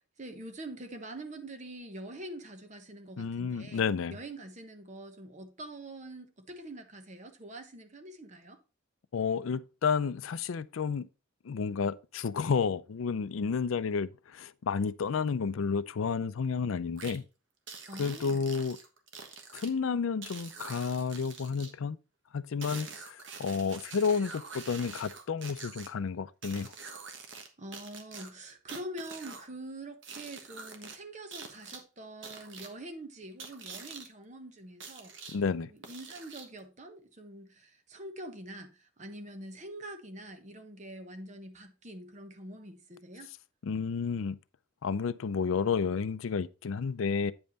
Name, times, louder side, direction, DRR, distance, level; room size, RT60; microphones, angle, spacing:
voice 1, 0.2-3.8 4.1-8.6 17.9-18.4 27.6-35.1 35.7-43.3, right 1 dB, 35° right, 1.1 m, -45 dB
voice 2, 3.2-4.2 9.1-11.1 11.4-17.2 18.0-18.8 19.5-22.0 22.3-26.7 35.3-35.7 43.6-44.4 44.8-47.3, left 5 dB, 80° left, 0.4 m, -31 dB
sound 1, 17.0-17.2 17.7-19.7 20.2-21.7 22.6-25.9 26.4-27.5 27.7-29.5 30.0-31.0 31.3-31.8 32.2-32.7 33.4-34.1 34.8-35.4 35.8-36.6, right 5 dB, 65° right, 1.4 m, -45 dB
8.9 x 5.4 x 4.0 m
head